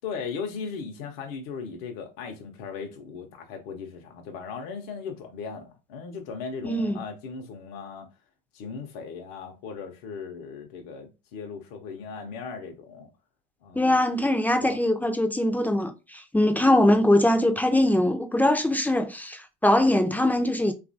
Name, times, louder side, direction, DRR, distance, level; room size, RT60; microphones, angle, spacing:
voice 1, 0.0-8.1 8.5-13.1 13.6-14.0 14.6-14.8, left 5 dB, 70° left, 0.6 m, -37 dB
voice 2, 6.6-7.0 13.7-20.7, left 1 dB, 5° left, 0.4 m, -22 dB
2.9 x 2.4 x 2.6 m
hypercardioid pair, 85°, 29 cm